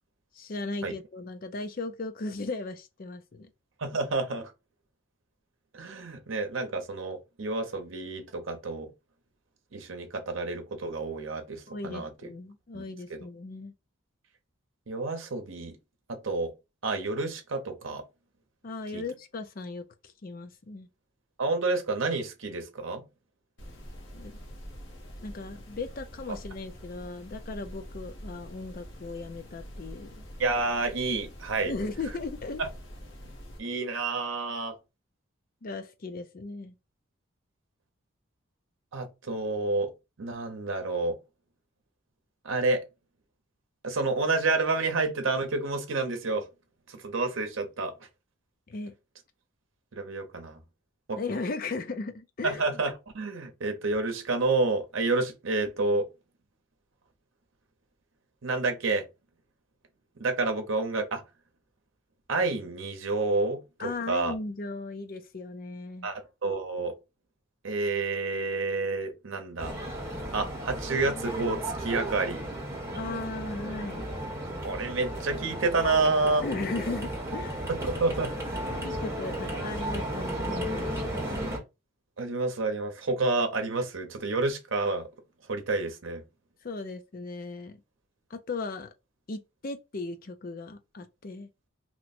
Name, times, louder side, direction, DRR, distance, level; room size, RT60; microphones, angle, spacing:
voice 1, 0.3-3.5 11.7-13.7 18.6-20.9 24.1-24.4 25.2-30.3 31.6-32.6 35.6-36.8 48.7-48.9 51.2-52.6 63.8-66.1 72.9-74.1 76.4-77.6 78.8-81.5 86.6-87.8 88.3-88.9 89.3-91.5, left 3 dB, 40° left, 0.4 m, -37 dB
voice 2, 3.8-4.5 5.7-8.9 9.7-12.1 12.7-12.8 13.1-13.2 14.9-15.8 16.1-16.5 16.8-18.0 18.9-19.0 21.4-23.0 30.4-31.7 32.6-32.7 33.6-34.8 38.9-39.9 40.2-41.2 42.4-42.8 43.8-46.5 46.9-47.9 49.9-50.6 51.1-51.2 52.4-56.1 58.4-59.1 60.2-61.2 62.3-64.3 66.0-66.9 67.6-69.7 70.3-72.4 74.6-76.4 77.7-78.3 82.2-85.1 85.5-86.2, right 3 dB, 65° right, 0.8 m, -29 dB
sound 1, 23.6-33.6, equal, 60° left, 1.0 m, -45 dB
sound 2, 69.6-81.6, right 1 dB, 15° right, 1.0 m, -34 dB
2.9 x 2.1 x 4.1 m
head